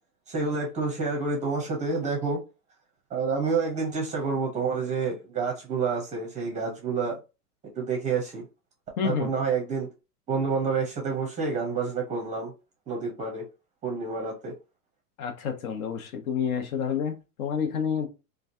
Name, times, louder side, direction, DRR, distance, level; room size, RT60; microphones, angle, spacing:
voice 1, 0.3-2.4 3.1-7.1 7.8-8.4 9.0-9.9 10.3-12.5 12.9-13.4 13.8-14.5, right 4 dB, 15° right, 0.6 m, -28 dB
voice 2, 9.0-9.3 15.2-18.1, left 7 dB, 60° left, 1.0 m, -29 dB
3.1 x 2.3 x 2.6 m
hypercardioid pair, 135°, 47 cm